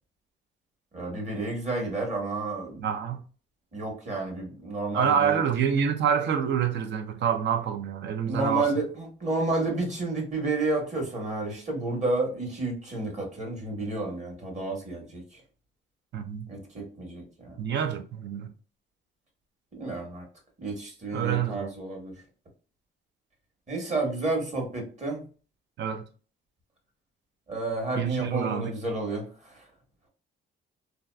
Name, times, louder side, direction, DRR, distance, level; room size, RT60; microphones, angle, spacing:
voice 1, 0.9-2.8 3.7-5.4 8.3-15.4 16.5-17.6 19.7-20.2 20.6-22.1 23.7-25.2 27.5-29.6, right 2 dB, 35° right, 1.3 m, -31 dB
voice 2, 2.8-3.2 4.9-8.7 16.1-16.5 17.6-18.5 21.1-21.7 25.8-26.0 28.0-28.7, right 8 dB, 65° right, 0.5 m, -27 dB
2.7 x 2.3 x 2.2 m
cardioid pair, 90°, 20 cm